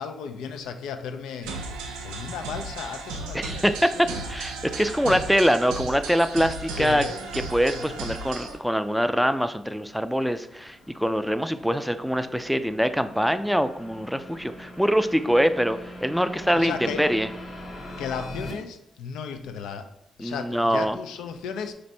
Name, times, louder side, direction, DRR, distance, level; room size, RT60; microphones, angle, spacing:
voice 1, 0.0-3.6 3.9-5.2 6.7-7.3 7.7-8.1 16.5-17.1 18.0-19.9 20.2-21.7, left 6 dB, 80° left, 7 dB, 0.3 m, -35 dB
sound 1, 1.4-8.6, right 3 dB, 90° right, 0.4 m, -35 dB
voice 2, 3.3-3.9 4.3-7.0 7.3-17.3 20.2-21.0, equal, ahead, 10 dB, 0.3 m, -24 dB
sound 2, 8.5-18.5, equal, 50° left, 1.5 m, -43 dB
4.1 x 2.6 x 3.2 m, 0.79 s
hypercardioid pair, 45°, 0 cm